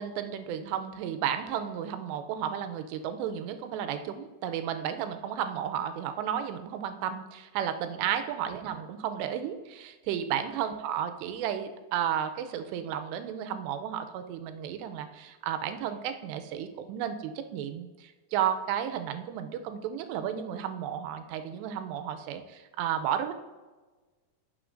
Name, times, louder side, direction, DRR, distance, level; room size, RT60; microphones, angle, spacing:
voice 1, 0.0-23.3, right 9 dB, 90° right, 8 dB, 2.8 m, -33 dB
11.0 x 6.3 x 2.5 m, 1.3 s
omnidirectional pair, 4.9 m